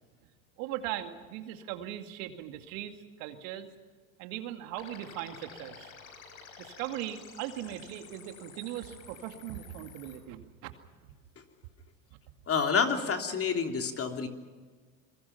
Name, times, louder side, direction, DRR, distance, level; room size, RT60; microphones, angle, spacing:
voice 1, 0.6-3.7 4.2-5.9 6.6-10.7 12.1-12.2, right 12 dB, 70° right, 6 dB, 2.4 m, -39 dB
sound 1, 4.7-10.2, left 6 dB, 80° left, 5.2 m, -51 dB
voice 2, 12.5-14.3, left 6 dB, 30° left, 4 dB, 3.1 m, -28 dB
27.0 x 22.0 x 5.9 m, 1.4 s
hypercardioid pair, 95°, 42 cm